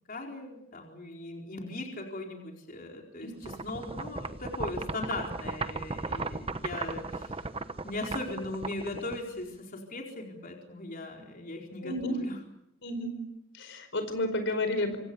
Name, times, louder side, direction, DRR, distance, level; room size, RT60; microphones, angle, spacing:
voice 1, 0.1-7.5 7.8-12.4, left 2 dB, 45° left, 1 dB, 4.5 m, -39 dB
sound 1, 3.4-9.6, right 3 dB, 30° right, 1.1 m, -36 dB
voice 2, 11.8-12.1 12.8-13.1 13.6-15.0, left 1 dB, 65° left, 8 dB, 4.9 m, -31 dB
26.5 x 26.5 x 7.1 m, 0.82 s
head